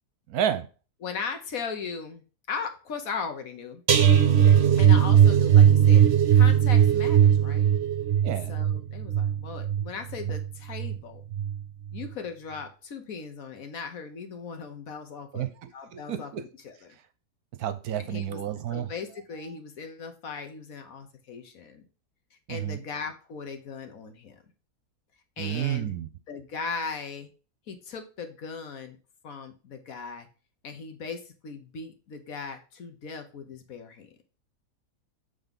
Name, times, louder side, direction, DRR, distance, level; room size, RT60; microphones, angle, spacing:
voice 1, 0.3-0.7 8.2-8.6 15.3-16.4 17.6-18.9 22.5-22.8 25.4-26.1, right 10 dB, 70° right, 11 dB, 1.1 m, -30 dB
voice 2, 1.0-2.2 2.5-3.8 4.8-6.0 6.3-7.7 8.2-11.2 11.9-17.0 18.0-18.4 18.7-21.9 22.5-24.4 25.4-25.9 26.3-27.3 27.7-29.0 29.2-30.3 30.6-34.2, left 5 dB, 60° left, 6 dB, 1.4 m, -38 dB
sound 1, 3.9-11.0 11.3-11.6 11.9-12.1, right 9 dB, 50° right, 1.0 m, -19 dB
7.7 x 3.7 x 5.2 m, 0.35 s
omnidirectional pair, 1.7 m